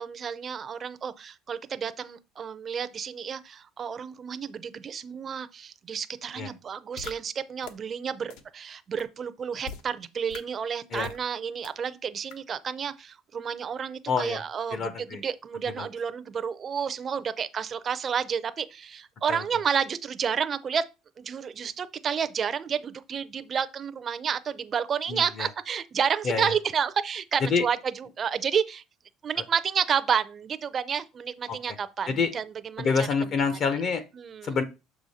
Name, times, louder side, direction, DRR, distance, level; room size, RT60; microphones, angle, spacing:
voice 1, 0.0-20.8 21.2-28.8 29.2-33.1 34.2-34.5, right 7 dB, 25° right, 0.4 m, -30 dB
sound 1, 7.0-7.1 7.6-7.7 8.3-8.4 9.0-9.1 9.6-9.8 10.3-10.4 11.0-11.2 11.6-11.7 12.3-12.4, left 6 dB, 80° left, 1.0 m, -39 dB
voice 2, 14.1-14.4 14.7-15.2 15.8-15.9 19.3-19.4 25.1-25.5 26.2-26.5 27.4-27.6 31.5-31.8 32.1-32.3 32.8-34.0 34.4-34.6, left 5 dB, 35° left, 0.6 m, -27 dB
6.8 x 4.9 x 4.0 m
cardioid pair, 175°, 0 cm